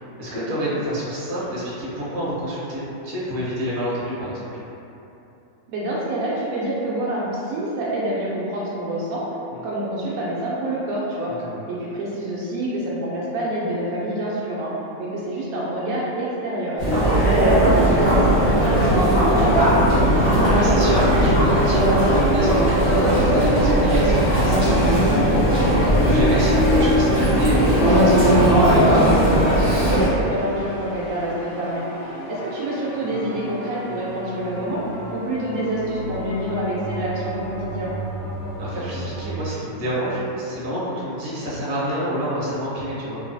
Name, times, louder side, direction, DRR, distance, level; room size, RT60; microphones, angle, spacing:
voice 1, 0.2-4.5 9.5-9.6 11.4-11.6 16.9-17.2 20.5-25.1 25.7-28.6 38.6-43.2, equal, 50° right, -8 dB, 0.8 m, -28 dB
voice 2, 5.7-9.2 9.6-11.3 11.7-14.7 15.0-16.8 17.2-19.9 29.8-34.8 35.1-37.9, right 1 dB, 75° right, -6 dB, 1.0 m, -27 dB
Chatter, 16.8-30.1, equal, 30° left, 0.7 m, -17 dB
sound 1, 29.0-39.2, right 1 dB, 70° left, 0.5 m, -35 dB
3.0 x 2.3 x 2.6 m, 2.9 s
omnidirectional pair, 1.5 m